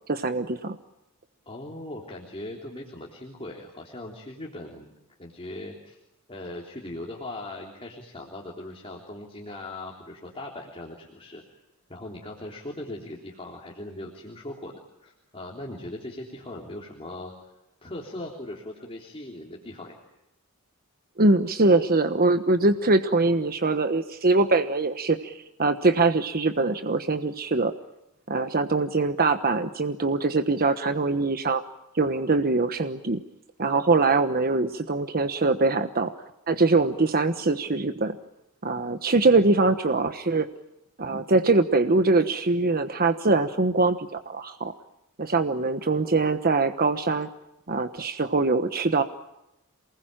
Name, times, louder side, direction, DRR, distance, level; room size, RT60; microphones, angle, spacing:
voice 1, 0.1-0.8 21.2-27.7 28.3-31.6 31.9-33.2 33.6-36.1 36.5-38.2 38.6-40.5 41.0-44.7 45.2-47.3 47.7-49.0, right 3 dB, 45° right, 8 dB, 1.2 m, -23 dB
voice 2, 1.5-4.9 5.2-6.0 6.3-11.4 11.9-17.3 17.8-20.0, left 1 dB, 25° left, -1 dB, 3.5 m, -39 dB
28.0 x 20.5 x 9.1 m, 0.91 s
head